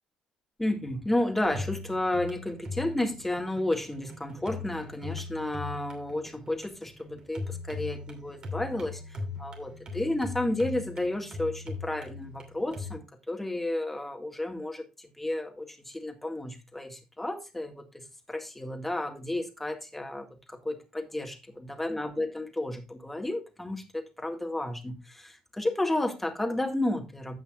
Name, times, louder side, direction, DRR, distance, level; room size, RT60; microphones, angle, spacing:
voice 1, 0.6-27.4, left 1 dB, 10° left, 1.8 m, -32 dB
sound 1, 1.4-12.9, left 4 dB, 40° right, 2.9 m, -40 dB
15.5 x 5.8 x 2.4 m
cardioid pair, 90°, 2 cm